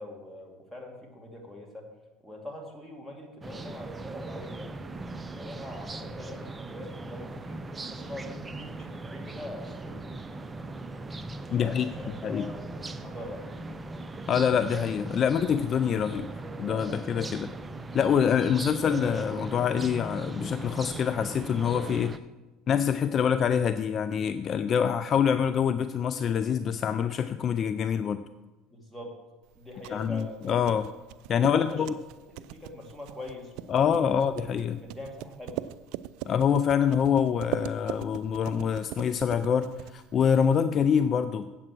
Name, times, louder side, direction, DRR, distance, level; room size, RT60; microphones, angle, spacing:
voice 1, 0.0-1.8 2.2-4.9 5.4-10.0 11.4-13.5 28.7-29.1 29.6-30.4 31.4-31.8 32.4-33.8 34.1-34.2 34.8-35.6, left 1 dB, ahead, -1 dB, 2.4 m, -43 dB
sound 1, 3.4-22.2, right 2 dB, 20° right, 0.5 m, -39 dB
voice 2, 11.5-11.9 12.2-12.5 14.3-16.3 16.6-17.5 17.9-22.2 22.7-28.2 29.9-30.9 31.3-31.9 33.7-34.8 36.3-41.5, left 7 dB, 40° left, 11 dB, 0.4 m, -25 dB
sound 2, 29.5-40.6, right 13 dB, 70° right, 0.4 m, -41 dB
8.7 x 7.8 x 6.0 m, 1.1 s
supercardioid pair, 110°, 0 cm